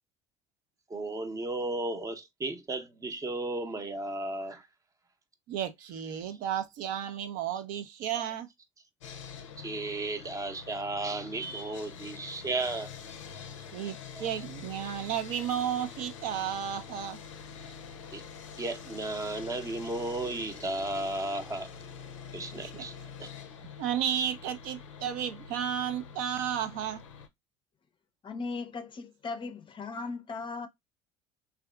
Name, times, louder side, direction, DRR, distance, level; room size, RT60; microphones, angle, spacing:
voice 1, 0.9-4.7 9.6-12.9 14.1-14.4 18.1-18.3 18.6-21.7 22.3-22.9 23.2-23.3, right 2 dB, 20° right, 0.6 m, -34 dB
voice 2, 5.5-8.5 13.7-17.2 22.5-22.8 23.8-27.0, right 9 dB, 60° right, 0.5 m, -33 dB
Sawing, 9.0-27.3, left 7 dB, 85° left, 0.4 m, -46 dB
voice 3, 28.2-30.7, left 4 dB, 30° left, 0.5 m, -37 dB
3.4 x 2.4 x 2.2 m
hypercardioid pair, 70°, 16 cm